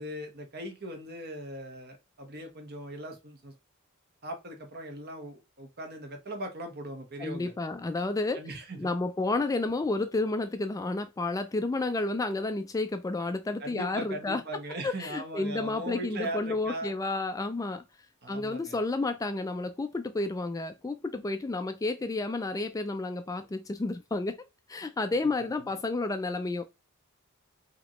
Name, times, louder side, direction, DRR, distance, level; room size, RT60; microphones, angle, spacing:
voice 1, 0.0-3.5 4.2-7.5 8.3-8.9 13.6-16.9 18.2-18.8 25.4-25.7, right 1 dB, 50° right, 1.2 m, -39 dB
voice 2, 7.2-8.4 8.8-14.4 14.8-17.8 18.3-24.4 24.7-26.6, left 2 dB, 15° left, 0.3 m, -31 dB
5.0 x 2.9 x 3.0 m
head